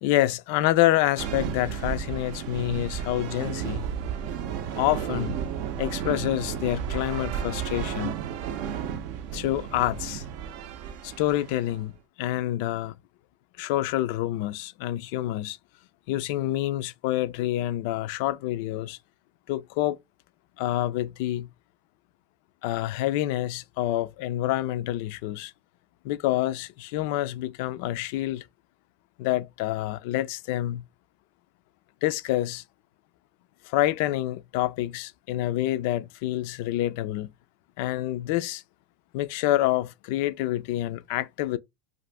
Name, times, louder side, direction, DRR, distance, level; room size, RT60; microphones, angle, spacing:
voice 1, 0.0-3.8 4.8-5.4 5.8-8.2 9.3-10.2 11.0-11.9 12.2-12.9 13.6-15.6 16.1-19.0 19.5-20.0 20.6-21.5 22.6-25.5 26.0-28.4 29.2-30.8 32.0-32.6 33.7-37.3 37.8-38.6 39.1-41.6, left 14 dB, 65° left, 0.3 m, -27 dB
sound 1, 1.2-11.9, right 8 dB, 60° right, 0.5 m, -33 dB
2.6 x 2.5 x 3.3 m
supercardioid pair, 135°, 0 cm